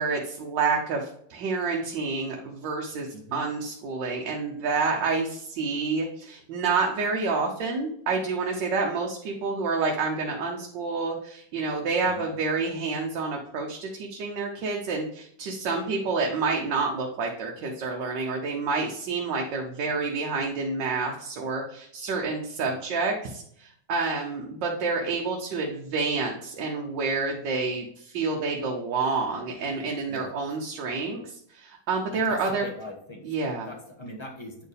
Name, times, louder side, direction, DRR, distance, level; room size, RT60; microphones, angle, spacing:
voice 1, 0.0-32.6 33.2-33.7, right 4 dB, 75° right, 1 dB, 1.5 m, -28 dB
voice 2, 3.1-3.5 12.0-12.4 22.6-22.9 30.1-30.3 32.1-33.2 33.6-34.5, left 1 dB, 15° left, -1 dB, 1.2 m, -41 dB
9.0 x 4.4 x 3.4 m, 0.69 s
omnidirectional pair, 2.0 m